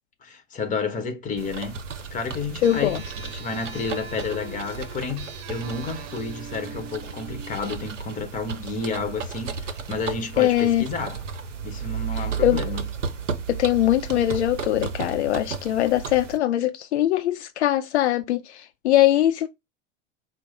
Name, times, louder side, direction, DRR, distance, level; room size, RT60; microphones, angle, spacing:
voice 1, 0.2-1.8 2.1-11.2 11.6-12.8, left 4 dB, 20° left, 1.0 m, -31 dB
sound 1, 1.4-16.4, right 6 dB, 80° right, 0.7 m, -34 dB
voice 2, 2.6-3.0 10.4-10.8 12.1-12.6 13.5-19.5, left 13 dB, 65° left, 0.5 m, -22 dB
sound 2, 2.6-7.7, right 5 dB, 55° right, 0.9 m, -42 dB
4.6 x 2.1 x 4.2 m
figure-of-eight pair, 90°, 37 cm